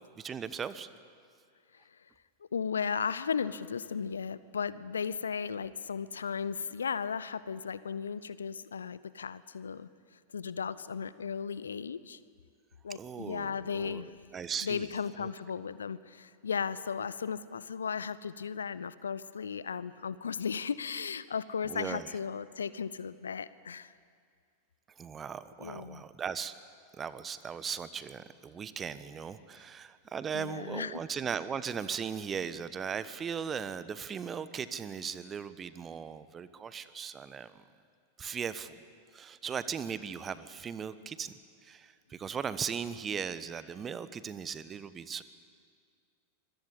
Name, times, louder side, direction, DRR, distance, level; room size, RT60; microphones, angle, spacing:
voice 1, 0.2-0.9 12.9-14.9 15.2-15.3 21.7-22.1 25.0-26.5 27.0-37.6 38.2-38.8 39.1-41.3 41.6-45.2, right 7 dB, 20° right, 14 dB, 1.1 m, -38 dB
voice 2, 2.5-9.9 10.3-12.2 12.8-14.1 14.6-23.9 25.6-26.0 30.3-31.0, left 6 dB, 70° left, 17 dB, 0.7 m, -35 dB
25.0 x 22.5 x 8.5 m, 2.1 s
figure-of-eight pair, 90°, 0 cm